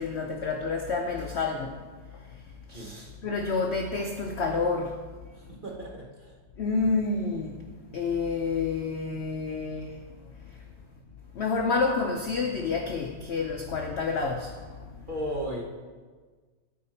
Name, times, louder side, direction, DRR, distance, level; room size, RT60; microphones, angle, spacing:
voice 1, 0.0-1.7 2.7-4.9 6.6-7.6 7.9-9.9 11.4-14.5, left 4 dB, 75° left, 2 dB, 0.6 m, -29 dB
voice 2, 5.3-6.4 15.1-15.6, equal, 35° right, -2 dB, 0.9 m, -35 dB
13.0 x 4.8 x 4.3 m, 1.4 s
omnidirectional pair, 1.9 m